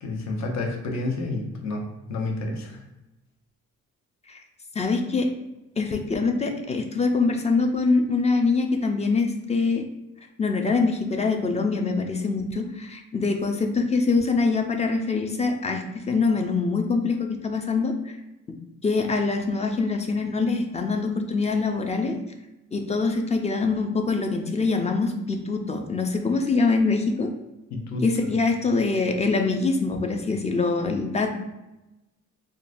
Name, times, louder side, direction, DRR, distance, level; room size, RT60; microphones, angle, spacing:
voice 1, 0.0-2.8 27.7-28.1, left 2 dB, 60° left, 1 dB, 0.8 m, -30 dB
voice 2, 4.7-5.3 5.8-9.8 10.4-18.2 18.8-22.2 22.7-27.3 28.0-31.3, left 4 dB, 20° left, 4 dB, 0.4 m, -24 dB
3.7 x 2.3 x 2.5 m, 0.98 s
cardioid pair, 90°, 30 cm